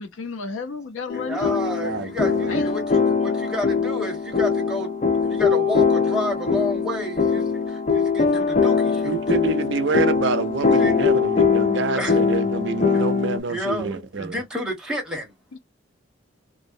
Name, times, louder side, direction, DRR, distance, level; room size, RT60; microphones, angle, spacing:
voice 1, 0.0-1.5 2.5-2.7 15.5-15.6, left 4 dB, 85° left, 0.6 m, -32 dB
sound 1, 1.1-13.4, left 5 dB, 35° left, 0.3 m, -22 dB
voice 2, 1.1-4.9 5.2-9.1 10.6-11.2 12.0-12.2 12.9-13.0 13.5-15.3, left 1 dB, 5° right, 0.9 m, -30 dB
voice 3, 1.8-2.6 9.0-14.4, right 4 dB, 65° right, 0.5 m, -27 dB
2.6 x 2.0 x 2.6 m
head